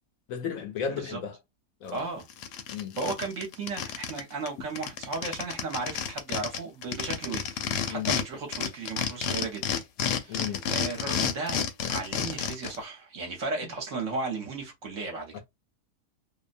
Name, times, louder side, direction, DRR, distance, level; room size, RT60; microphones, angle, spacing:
voice 1, 0.3-1.4 1.8-2.0 2.7-3.0 7.9-8.1 10.0-10.6 15.3-15.4, left 7 dB, 70° left, 0.9 m, -34 dB
sound 1, 1.9-2.0 2.3-4.2 4.5-4.6 4.8-8.2 8.5-12.8, left 8 dB, 85° left, 1.2 m, -30 dB
voice 2, 1.9-2.3 3.0-7.6 7.9-9.8 10.2-11.6 11.9-15.4, right 3 dB, 55° right, 1.0 m, -35 dB
2.7 x 2.1 x 2.5 m
omnidirectional pair, 1.7 m